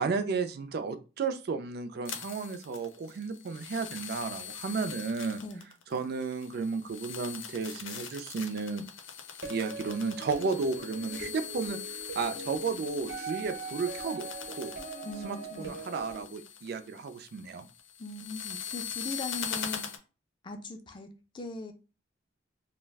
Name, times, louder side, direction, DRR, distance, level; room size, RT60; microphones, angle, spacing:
voice 1, 0.0-5.4 5.9-8.9 9.5-14.7 15.2-17.7, right 4 dB, 55° right, 0.3 m, -33 dB
sound 1, 2.1-20.0, left 8 dB, 85° left, 0.6 m, -42 dB
sound 2, 9.4-16.2, right 3 dB, 85° right, 0.9 m, -41 dB
voice 2, 15.0-15.8 18.0-19.9 20.4-21.1 21.3-21.7, left 2 dB, 25° left, 0.3 m, -40 dB
2.3 x 2.1 x 3.3 m
head